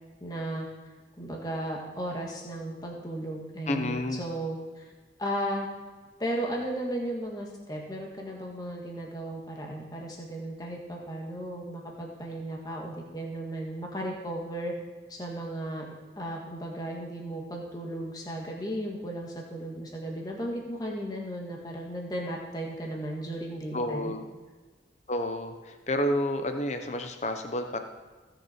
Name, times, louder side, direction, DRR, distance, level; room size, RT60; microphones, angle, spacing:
voice 1, 0.2-0.7 1.2-4.9 5.2-5.7 6.2-14.7 15.1-15.8 16.2-24.1, right 1 dB, 20° left, -1 dB, 1.8 m, -35 dB
voice 2, 3.7-4.2 23.7-24.3 25.1-27.8, left 1 dB, 40° left, 6 dB, 0.9 m, -30 dB
17.0 x 6.7 x 4.5 m, 1.3 s
head